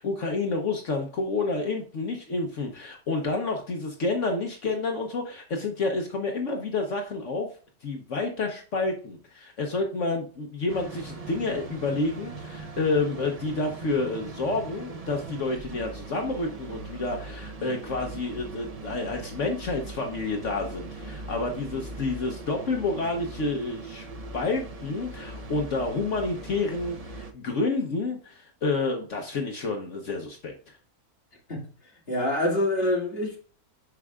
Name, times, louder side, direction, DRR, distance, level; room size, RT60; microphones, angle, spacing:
voice 1, 0.0-7.5 7.8-24.1 24.3-30.5, left 3 dB, 55° left, 1.2 m, -29 dB
sound 1, 10.7-27.3, right 3 dB, 45° right, 0.5 m, -40 dB
voice 2, 32.1-33.4, left 1 dB, 40° left, 2.5 m, -25 dB
9.6 x 4.8 x 2.3 m
omnidirectional pair, 1.6 m